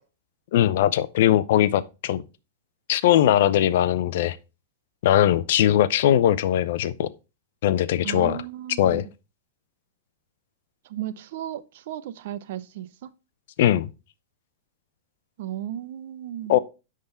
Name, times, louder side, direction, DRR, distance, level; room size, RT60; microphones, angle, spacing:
voice 1, 0.5-2.2 2.9-4.4 5.0-7.1 7.6-8.4 8.8-9.0 13.6-13.9 16.5-16.6, left 11 dB, 65° left, 0.6 m, -20 dB
voice 2, 8.0-9.1 10.8-13.1 15.4-16.6, right 12 dB, 65° right, 0.7 m, -35 dB
9.6 x 3.7 x 4.3 m
hypercardioid pair, 125°, 0 cm